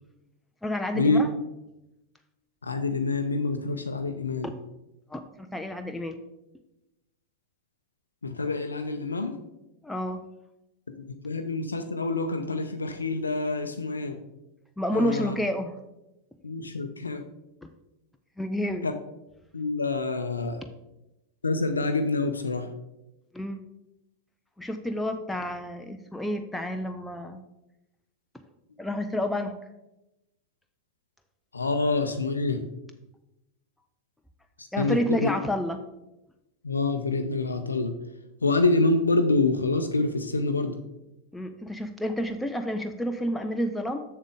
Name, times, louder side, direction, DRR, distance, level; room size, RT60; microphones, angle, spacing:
voice 1, 0.6-1.3 4.4-4.5 5.1-6.2 9.8-10.2 14.8-15.7 17.6-17.7 18.4-18.9 23.3-23.6 24.6-27.4 28.8-29.5 34.7-35.8 41.3-44.0, equal, 5° left, 6 dB, 0.5 m, -29 dB
voice 2, 2.6-4.5 8.2-9.4 11.0-14.2 14.9-15.3 16.4-17.2 18.8-18.9 19.5-20.6 21.4-22.7 31.5-32.6 34.8-35.3 36.6-37.9 38.4-40.8, left 3 dB, 75° left, 7 dB, 0.5 m, -26 dB
7.2 x 6.6 x 3.6 m, 0.94 s
figure-of-eight pair, 90°, 0 cm